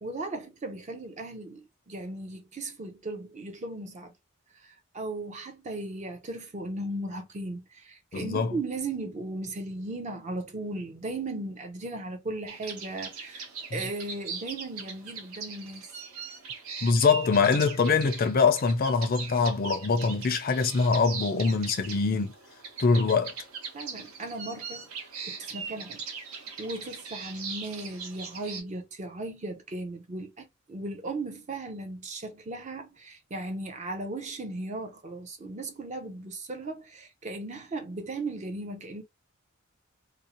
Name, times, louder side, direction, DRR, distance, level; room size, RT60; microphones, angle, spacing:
voice 1, 0.0-4.1 4.5-15.9 23.7-26.0 26.3-39.0, right 2 dB, 35° right, 0.5 m, -37 dB
voice 2, 8.1-8.5 16.8-22.3 22.8-23.3, left 4 dB, 40° left, 0.4 m, -23 dB
sound 1, 12.5-28.6, right 5 dB, 85° right, 0.8 m, -40 dB
2.6 x 2.0 x 2.8 m
head